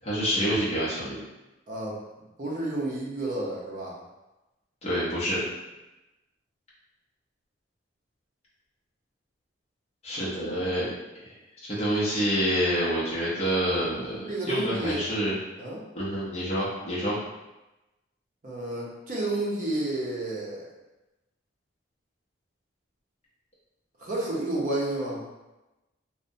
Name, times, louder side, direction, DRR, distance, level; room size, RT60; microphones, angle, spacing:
voice 1, 0.0-1.2 4.8-5.4 10.0-10.9 11.1-11.3 11.6-15.3 15.9-17.2, equal, 35° left, -8 dB, 0.6 m, -27 dB
voice 2, 1.7-2.0 2.4-4.0 14.3-15.0 15.6-15.8 18.4-20.7 24.0-25.2, right 1 dB, 45° right, -4 dB, 0.6 m, -30 dB
2.6 x 2.1 x 2.6 m, 1.0 s
head